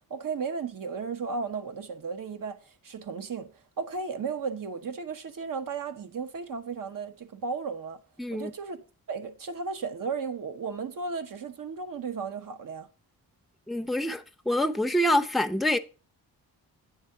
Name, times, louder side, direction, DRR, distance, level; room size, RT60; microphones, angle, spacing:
voice 1, 0.1-8.0 8.3-12.9, right 5 dB, 60° right, 1.1 m, -35 dB
voice 2, 8.2-8.5 13.7-15.8, left 1 dB, ahead, 0.6 m, -26 dB
9.2 x 3.6 x 6.5 m
cardioid pair, 75°, 37 cm